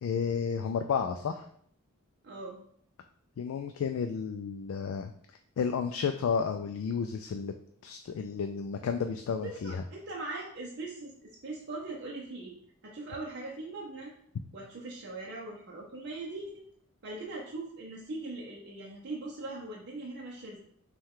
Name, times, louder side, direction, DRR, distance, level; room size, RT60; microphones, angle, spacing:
voice 1, 0.0-1.5 3.4-5.1 5.6-7.5 7.8-9.8, left 6 dB, 65° left, 6 dB, 0.3 m, -32 dB
voice 2, 2.2-2.6 9.4-12.6 12.8-14.1 14.5-16.7 17.0-20.6, right 2 dB, 50° right, -3 dB, 0.6 m, -40 dB
5.4 x 2.3 x 3.6 m, 0.64 s
head